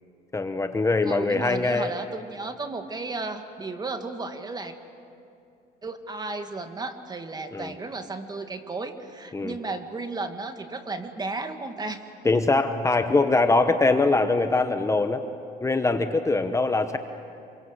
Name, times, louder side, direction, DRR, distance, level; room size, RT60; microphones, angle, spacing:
voice 1, 0.3-1.9 7.5-7.7 9.3-9.5 12.2-15.2 15.6-17.0, left 3 dB, 15° left, 8 dB, 1.1 m, -22 dB
voice 2, 1.1-4.8 5.8-12.0, right 3 dB, 25° right, 7 dB, 1.9 m, -34 dB
27.0 x 23.0 x 8.1 m, 2.6 s
cardioid pair, 110°, 17 cm